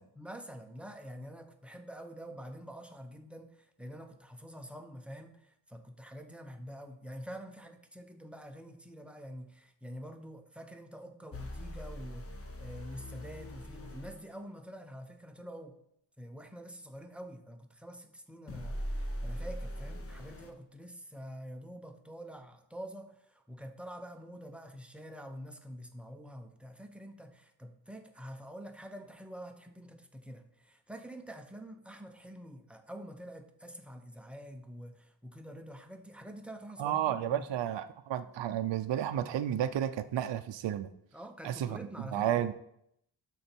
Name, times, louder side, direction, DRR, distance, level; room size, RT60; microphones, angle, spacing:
voice 1, 0.1-15.8 16.2-37.5 41.1-42.5, equal, ahead, 5 dB, 0.7 m, -47 dB
Growling Synth, 11.3-14.2 18.5-20.5, equal, 30° left, 0.8 m, -40 dB
voice 2, 36.8-40.9 41.4-41.8 42.1-42.5, right 10 dB, 65° right, 10 dB, 0.5 m, -32 dB
12.0 x 4.1 x 4.4 m, 0.76 s
wide cardioid pair, 135°, 48 cm